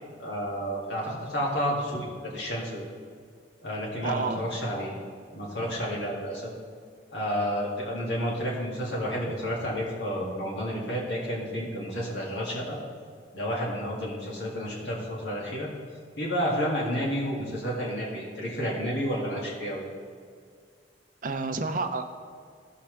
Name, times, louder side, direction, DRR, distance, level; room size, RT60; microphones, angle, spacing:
voice 1, 0.2-2.8 3.6-5.0 5.3-6.5 7.1-12.8 13.3-15.7 16.2-19.8, equal, 80° left, -4 dB, 2.4 m, -30 dB
voice 2, 4.0-4.4 21.2-22.1, right 3 dB, 50° right, 6 dB, 0.7 m, -30 dB
15.0 x 5.8 x 3.4 m, 2.1 s
head